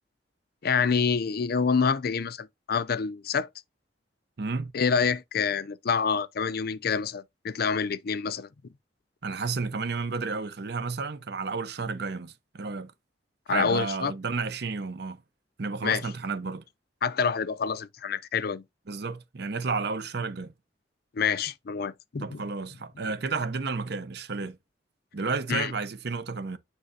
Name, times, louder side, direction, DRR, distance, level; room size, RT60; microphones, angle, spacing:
voice 1, 0.6-3.5 4.7-8.5 13.5-14.1 15.8-16.0 17.0-18.6 21.1-22.4 25.5-25.7, left 6 dB, 55° left, 0.5 m, -27 dB
voice 2, 4.4-4.7 9.2-12.9 13.5-15.2 15.6-16.6 18.9-20.5 22.2-24.6 25.1-26.6, right 4 dB, 65° right, 0.8 m, -32 dB
8.9 x 4.0 x 2.7 m
head